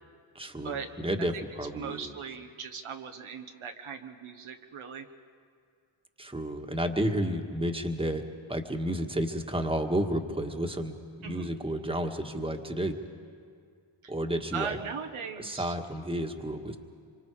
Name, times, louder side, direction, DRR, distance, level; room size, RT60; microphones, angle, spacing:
voice 1, 0.3-2.1 6.2-8.2 8.5-13.0 14.1-14.8 15.4-16.8, right 1 dB, 10° right, 4 dB, 1.7 m, -31 dB
voice 2, 1.8-5.1 11.2-11.5 14.0-14.1 14.5-15.7, right 6 dB, 75° right, 5 dB, 1.3 m, -39 dB
25.5 x 24.5 x 4.9 m, 2.2 s
cardioid pair, 55°, 49 cm